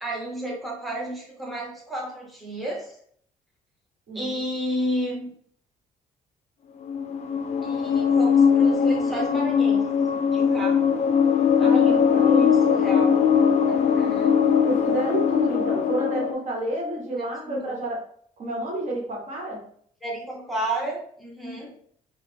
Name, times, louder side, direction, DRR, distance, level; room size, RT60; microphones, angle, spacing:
voice 1, 0.0-3.0 4.1-5.3 7.6-11.0 11.6-13.2 13.7-14.4 17.4-17.8 20.0-21.7, right 1 dB, ahead, -2 dB, 0.9 m, -32 dB
voice 2, 4.1-4.4 11.6-12.3 14.7-18.1 18.4-19.6, right 1 dB, 50° right, -1 dB, 1.0 m, -30 dB
sound 1, 6.9-16.3, left 7 dB, 50° left, 0.4 m, -20 dB
3.1 x 2.0 x 3.3 m, 0.62 s
cardioid pair, 90°, 15 cm